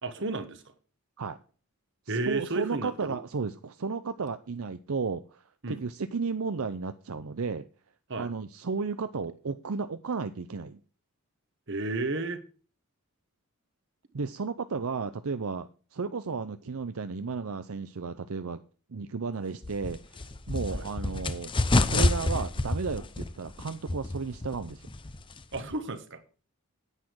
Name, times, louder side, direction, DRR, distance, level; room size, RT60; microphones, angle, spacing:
voice 1, 0.0-0.6 2.1-3.2 5.6-5.8 8.1-8.3 11.7-12.4 20.7-20.9 25.5-26.2, right 2 dB, 55° right, 1.4 m, -32 dB
voice 2, 2.1-7.7 8.2-10.8 14.1-18.6 18.9-21.5 21.9-24.9, right 4 dB, 75° right, 0.6 m, -33 dB
running grizzly, 19.6-25.8, left 2 dB, 20° left, 0.7 m, -29 dB
9.9 x 8.6 x 4.7 m
head